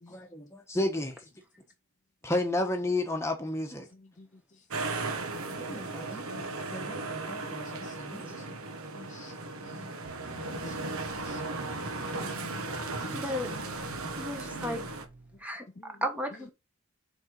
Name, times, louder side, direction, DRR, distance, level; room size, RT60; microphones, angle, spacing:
voice 1, 0.1-1.2 2.2-3.9 5.6-8.3 10.6-10.9 12.7-13.0 14.6-14.8, left 1 dB, 15° left, 1.2 m, -33 dB
sound 1, 4.7-15.1, right 3 dB, 80° right, 1.2 m, -36 dB
voice 2, 5.3-6.6 7.8-8.0 8.3-8.4 8.9-9.4 9.6-9.9 10.3-10.8 11.1-11.4 12.1-12.7 13.0-13.1 14.5-14.9, left 2 dB, 35° left, 0.5 m, -50 dB
sound 2, 10.0-15.4, right 1 dB, 35° right, 1.6 m, -49 dB
voice 3, 13.1-13.5 14.2-14.8 15.4-16.5, left 1 dB, 5° right, 1.2 m, -34 dB
6.5 x 4.1 x 4.8 m
head